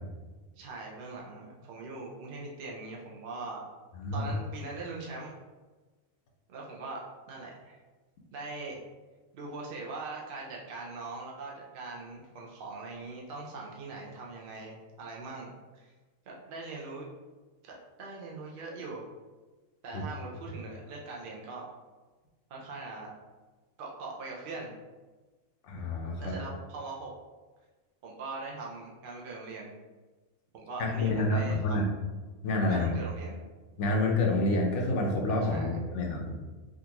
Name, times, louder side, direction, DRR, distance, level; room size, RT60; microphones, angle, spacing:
voice 1, 0.6-3.6 4.1-5.3 6.5-7.8 8.3-8.8 9.3-15.9 16.3-17.1 17.6-19.0 19.8-21.7 22.5-23.1 23.8-24.8 26.2-27.1 28.0-29.7 30.5-31.9 32.7-33.4 35.4-35.8, right 3 dB, 60° right, -2 dB, 0.5 m, -41 dB
voice 2, 25.7-26.3 30.8-31.8 32.4-32.9 33.8-36.4, left 2 dB, 65° left, 0 dB, 0.8 m, -28 dB
3.7 x 2.3 x 2.8 m, 1.3 s
omnidirectional pair, 1.5 m